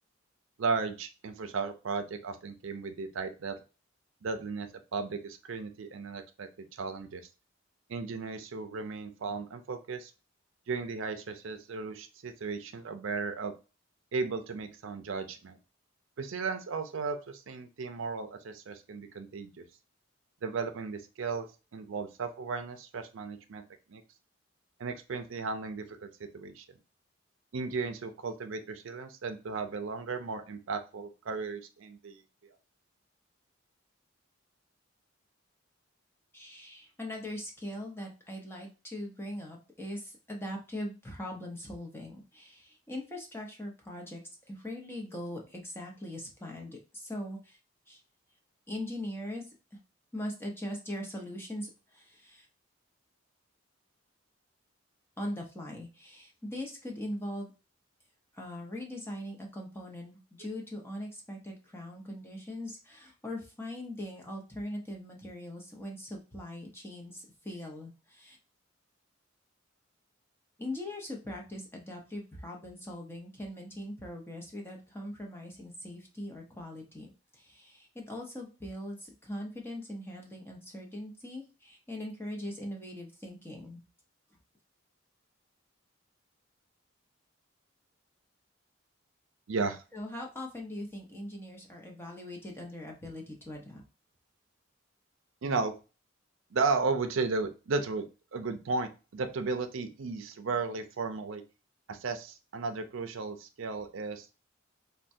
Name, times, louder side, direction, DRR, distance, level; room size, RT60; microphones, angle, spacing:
voice 1, 0.6-3.5 4.2-7.2 7.9-10.1 10.7-13.5 14.1-15.6 16.2-19.6 20.4-21.5 21.7-23.6 23.9-24.0 24.8-26.6 27.5-32.2 89.5-89.8 95.4-95.7 96.5-98.1 98.3-101.4 101.9-104.3, right 4 dB, 75° right, 7 dB, 0.5 m, -35 dB
voice 2, 36.3-44.2 44.5-47.6 47.9-48.0 48.7-49.8 50.1-52.5 55.2-57.5 58.3-68.4 70.6-77.1 77.3-83.8 89.9-93.8, left 1 dB, 10° left, 0 dB, 0.7 m, -41 dB
4.5 x 2.2 x 2.6 m, 0.31 s
head